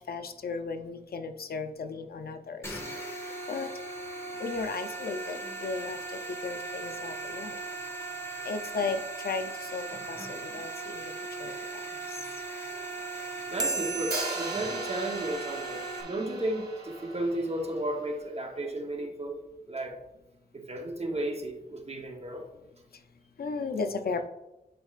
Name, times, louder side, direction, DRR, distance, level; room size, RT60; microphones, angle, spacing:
voice 1, 0.1-2.8 3.5-3.7 4.4-6.0 6.3-7.6 8.4-11.1 11.4-11.5 23.4-24.3, left 4 dB, 75° left, 7 dB, 0.5 m, -35 dB
sound 1, 2.6-16.0, right 3 dB, 15° left, 1.6 m, -38 dB
voice 2, 13.5-20.0 20.5-22.5, right 1 dB, 40° right, 3 dB, 0.9 m, -34 dB
sound 2, 13.6-16.4, right 3 dB, 25° right, 0.4 m, -37 dB
Hi-hat, 14.1-18.1, right 2 dB, 75° right, 1.7 m, -39 dB
10.5 x 4.5 x 2.4 m, 0.97 s
wide cardioid pair, 85°, 16 cm